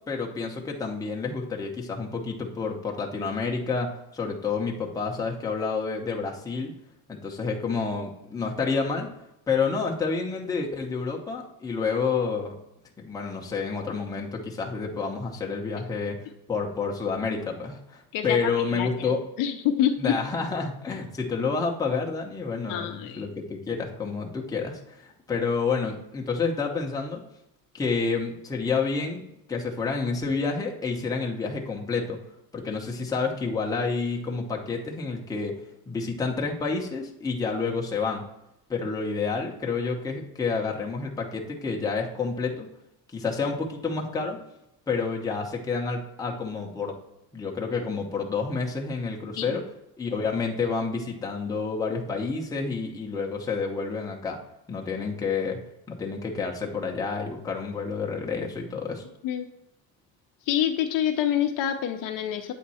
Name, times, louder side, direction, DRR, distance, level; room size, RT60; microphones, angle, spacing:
voice 1, 0.0-6.7 7.1-9.1 9.5-12.5 13.0-16.2 16.5-19.2 20.0-27.2 27.7-32.2 32.5-35.5 35.9-38.2 38.7-42.7 43.1-44.4 44.9-46.9 47.3-49.6 50.0-54.4 54.7-55.6 55.9-59.0, left 4 dB, 10° left, -1 dB, 0.7 m, -29 dB
voice 2, 19.4-20.1 22.7-23.3 49.4-49.6 59.2-59.5 60.5-62.5, left 10 dB, 50° left, 5 dB, 0.6 m, -26 dB
8.5 x 3.6 x 4.1 m, 0.83 s
cardioid pair, 165°, 42 cm